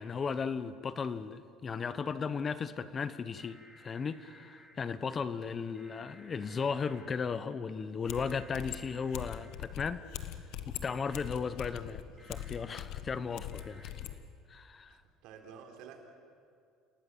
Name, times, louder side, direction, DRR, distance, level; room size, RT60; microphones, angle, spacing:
voice 1, 0.0-10.3 10.7-12.0 12.3-13.9 14.5-15.0, left 5 dB, 30° left, 14 dB, 0.9 m, -36 dB
sound 1, 3.4-4.7 5.7-7.1 8.1-9.5 10.8-11.2 12.2-12.5 13.5-13.9, equal, ahead, 4.0 m, -58 dB
voice 2, 5.5-5.8 12.1-12.5 14.9-16.1, right 6 dB, 70° right, 3 dB, 3.7 m, -53 dB
sound 2, 8.1-14.2, left 11 dB, 70° left, 1.4 m, -42 dB
29.0 x 18.0 x 8.0 m, 2.3 s
cardioid pair, 130°, 0 cm